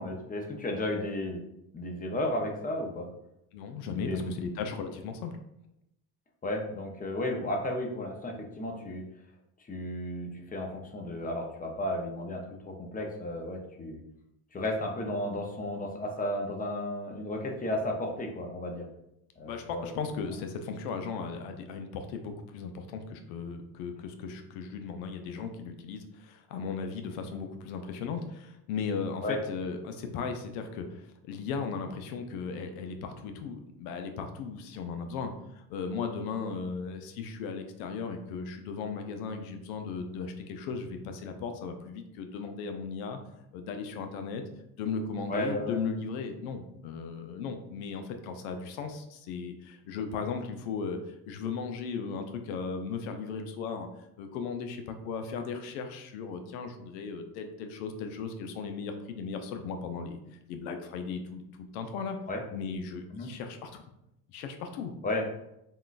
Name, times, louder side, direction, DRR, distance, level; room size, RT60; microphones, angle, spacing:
voice 1, 0.0-1.4 1.7-3.1 4.0-4.5 6.4-9.1 9.7-14.0 14.5-18.9 19.4-19.9 29.2-29.4 45.3-45.8 62.3-62.4 63.1-63.3 65.0-65.2, left 1 dB, 20° left, 2 dB, 0.6 m, -33 dB
voice 2, 3.5-5.4 19.4-43.2 43.5-44.4 44.8-53.9 54.2-60.2 60.5-62.2 62.5-63.8 64.3-64.9, left 5 dB, 85° left, 6 dB, 0.5 m, -36 dB
3.6 x 2.3 x 2.4 m, 0.83 s
supercardioid pair, 80°, 43 cm